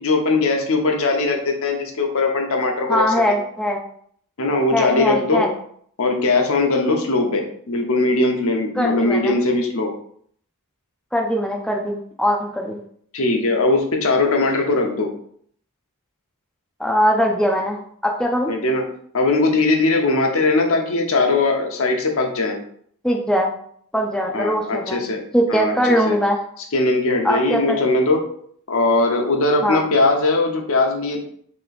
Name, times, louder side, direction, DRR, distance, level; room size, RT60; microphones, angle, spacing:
voice 1, 0.0-3.0 4.4-5.4 6.0-9.9 13.1-15.1 18.5-18.8 19.1-22.6 24.3-25.2 25.5-26.2 26.7-28.2 28.7-31.2, left 3 dB, 65° left, 2 dB, 0.8 m, -20 dB
voice 2, 2.9-3.8 4.7-5.5 8.8-9.3 11.1-12.8 16.8-18.5 23.0-23.5 23.9-25.0 25.3-26.4 27.2-27.8 29.6-29.8, equal, 5° left, 0 dB, 0.4 m, -21 dB
3.3 x 3.0 x 3.9 m, 0.62 s
head